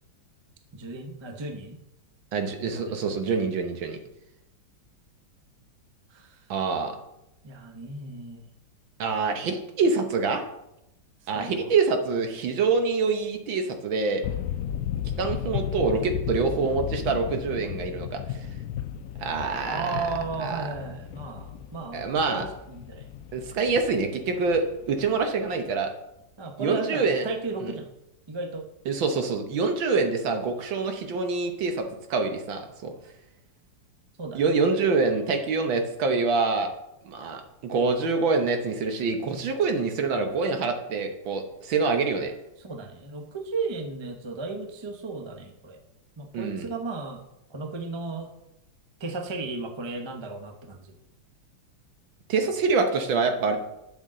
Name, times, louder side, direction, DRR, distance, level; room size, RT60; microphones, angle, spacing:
voice 1, 0.7-1.8 2.7-3.0 6.1-6.4 7.4-8.4 11.2-11.7 19.7-23.1 26.4-27.9 28.3-28.6 34.2-34.4 42.6-45.8 46.2-47.2 47.5-48.3 49.0-50.9, right 3 dB, 25° right, 4 dB, 0.5 m, -35 dB
voice 2, 2.3-4.0 6.5-7.0 9.0-10.4 11.3-14.2 15.2-18.4 19.2-19.9 20.4-20.6 21.9-22.5 23.3-25.9 26.6-27.3 27.6-27.7 28.9-32.9 34.3-36.7 37.1-42.3 46.3-46.7 52.3-53.6, right 4 dB, 75° right, 6 dB, 1.8 m, -26 dB
sound 1, 14.2-25.7, left 10 dB, 90° left, 0.8 m, -35 dB
12.0 x 7.0 x 3.8 m, 0.88 s
omnidirectional pair, 2.2 m